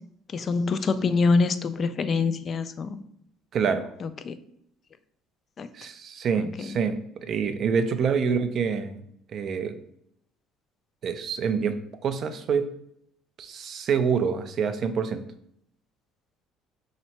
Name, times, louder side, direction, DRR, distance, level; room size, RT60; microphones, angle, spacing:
voice 1, 0.3-3.0 4.0-4.3 5.6-5.7 6.4-6.5, left 4 dB, 40° left, 12 dB, 0.3 m, -25 dB
voice 2, 3.5-3.9 5.7-9.0 9.3-9.8 11.0-11.7 12.0-12.7 13.4-15.2, right 6 dB, 50° right, 9 dB, 0.4 m, -26 dB
3.2 x 2.9 x 4.2 m, 0.71 s
cardioid pair, 105°, 0 cm